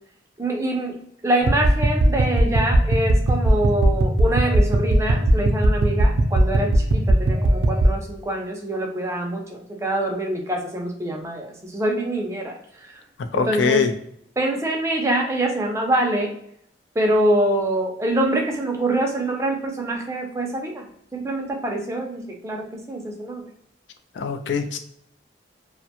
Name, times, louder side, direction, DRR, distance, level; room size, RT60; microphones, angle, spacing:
voice 1, 0.4-13.0 13.3-13.9 14.4-16.3 17.0-20.9 21.1-23.4, right 1 dB, 15° right, 1 dB, 0.4 m, -25 dB
sound 1, 1.4-7.9, right 1 dB, 75° right, 0.4 m, -19 dB
voice 2, 13.3-13.9 24.1-24.8, left 5 dB, 85° left, 8 dB, 0.4 m, -22 dB
2.4 x 2.1 x 2.8 m, 0.70 s
head